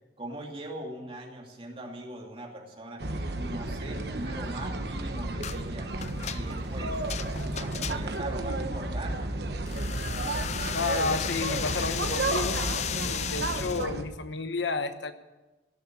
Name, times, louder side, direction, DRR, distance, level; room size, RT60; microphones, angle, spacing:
voice 1, 0.2-3.1 3.4-5.9 6.3-7.0 7.4-9.3, right 1 dB, 30° right, 1 dB, 2.5 m, -41 dB
sound 1, 3.0-14.0, right 2 dB, 65° right, 1.2 m, -32 dB
sound 2, 5.4-5.6 6.0-8.3 9.7-13.9, left 9 dB, 40° left, 0.4 m, -35 dB
voice 2, 10.7-12.6 13.0-15.1, left 3 dB, 90° left, 9 dB, 1.1 m, -31 dB
17.0 x 7.0 x 9.7 m, 1.1 s
head